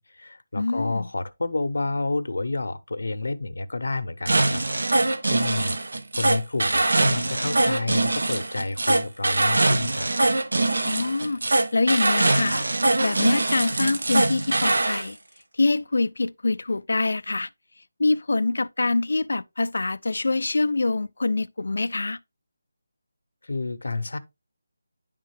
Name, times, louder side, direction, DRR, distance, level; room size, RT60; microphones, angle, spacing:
voice 1, 0.0-4.6 5.2-5.8 6.2-10.1 23.4-24.2, left 3 dB, 85° left, 0.7 m, -29 dB
voice 2, 0.5-1.1 10.8-15.2 15.5-17.5 18.0-22.2, left 3 dB, 65° left, 0.4 m, -25 dB
sound 1, 4.2-15.1, right 2 dB, 80° right, 0.8 m, -23 dB
10.5 x 3.6 x 3.3 m
figure-of-eight pair, 180°, 0 cm